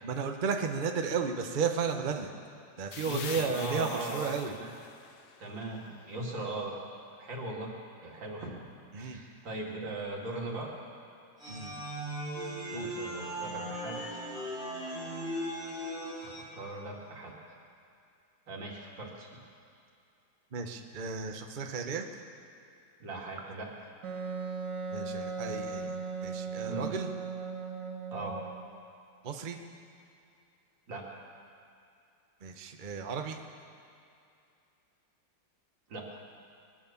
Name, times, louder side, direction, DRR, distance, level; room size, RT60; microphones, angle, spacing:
voice 1, 0.0-2.3 2.8-4.6 8.9-9.2 11.5-11.7 12.7-12.9 20.5-22.1 24.9-26.0 26.2-27.1 29.2-29.6 32.4-33.4, right 5 dB, 35° right, 5 dB, 0.8 m, -34 dB
sound 1, 2.9-6.5, left 7 dB, 75° left, 0.6 m, -45 dB
voice 2, 3.0-4.8 5.4-6.7 7.2-7.7 8.0-8.6 9.0-10.7 12.7-14.0 16.2-17.3 18.5-19.3 23.0-23.7 26.7-26.9 28.1-28.4 30.9-31.1 35.9-36.2, right 2 dB, 90° right, -2 dB, 3.1 m, -39 dB
sound 2, 11.4-16.4, right 1 dB, ahead, 3.1 m, -38 dB
Wind instrument woodwind instrument, 24.0-28.7, right 4 dB, 70° right, 2.1 m, -37 dB
21.5 x 9.3 x 7.1 m, 2.5 s
omnidirectional pair, 2.0 m